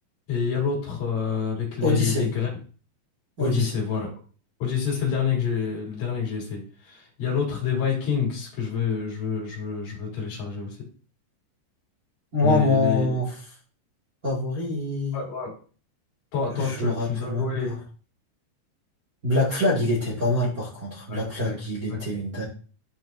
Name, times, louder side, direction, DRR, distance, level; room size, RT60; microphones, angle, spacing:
voice 1, 0.3-2.5 3.4-4.1 4.6-10.8 12.4-13.2 15.1-15.5 16.3-17.7 21.1-21.6 21.9-22.0, left 6 dB, 50° left, -3 dB, 4.4 m, -27 dB
voice 2, 1.8-2.3 3.4-3.7 12.3-13.4 14.2-15.2 16.5-17.7 19.2-22.4, left 2 dB, 40° right, -6 dB, 1.2 m, -25 dB
13.0 x 4.6 x 2.7 m, 0.40 s
omnidirectional pair, 5.4 m